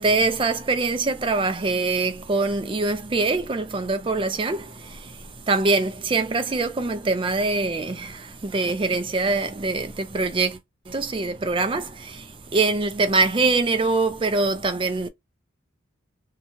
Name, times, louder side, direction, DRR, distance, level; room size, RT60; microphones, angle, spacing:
voice 1, 0.0-10.6 10.9-15.1, right 3 dB, 25° right, 0.4 m, -24 dB
2.7 x 2.2 x 2.9 m
head